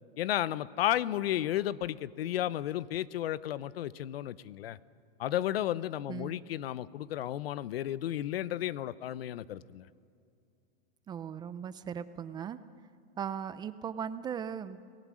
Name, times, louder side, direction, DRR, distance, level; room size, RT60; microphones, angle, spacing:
voice 1, 0.2-4.8 5.2-9.9, left 12 dB, 90° left, 18 dB, 0.8 m, -33 dB
voice 2, 11.1-12.6 13.2-14.8, right 8 dB, 15° right, 13 dB, 0.4 m, -38 dB
29.0 x 17.5 x 6.3 m, 2.4 s
supercardioid pair, 150°, 29 cm